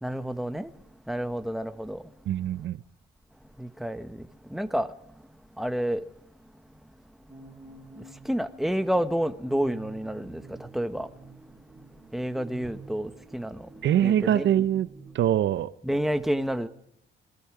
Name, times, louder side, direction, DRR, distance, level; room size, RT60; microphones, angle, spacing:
voice 1, 0.0-0.8 1.1-2.0 2.4-2.5 3.6-5.1 5.6-6.1 7.9-11.4 11.9-13.7 14.0-14.5 15.8-16.7, equal, ahead, 1.4 m, -30 dB
voice 2, 2.3-2.8 13.8-14.9 15.1-15.7, right 11 dB, 70° right, 0.8 m, -23 dB
sound 1, 7.3-15.4, right 3 dB, 25° right, 4.3 m, -48 dB
27.0 x 21.5 x 4.9 m
cardioid pair, 90°, 20 cm